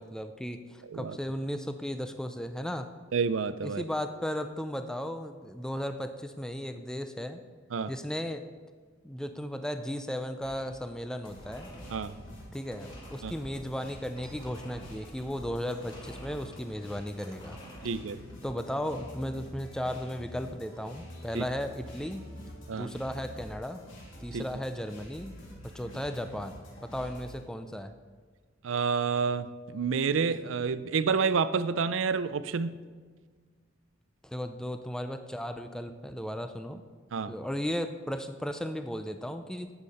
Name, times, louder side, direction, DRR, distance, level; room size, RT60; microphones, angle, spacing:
voice 1, 0.0-2.9 3.6-7.4 7.9-8.4 9.0-11.7 12.5-17.6 18.4-22.3 22.7-23.8 24.2-25.4 25.7-27.9 34.2-36.8 37.3-39.7, equal, 5° left, 7 dB, 0.4 m, -35 dB
voice 2, 3.1-3.8 7.7-7.9 11.9-12.1 13.2-13.3 17.8-18.2 21.3-21.4 22.7-22.9 24.3-24.4 28.6-32.8 37.1-37.3, right 5 dB, 70° right, 14 dB, 0.5 m, -29 dB
snowmobile won't start false starts lawnmower pull cord, 10.4-18.4, equal, 25° left, 2.0 m, -50 dB
sound 1, 11.3-27.4, equal, 70° left, 2.9 m, -47 dB
12.0 x 8.2 x 4.2 m, 1.5 s
head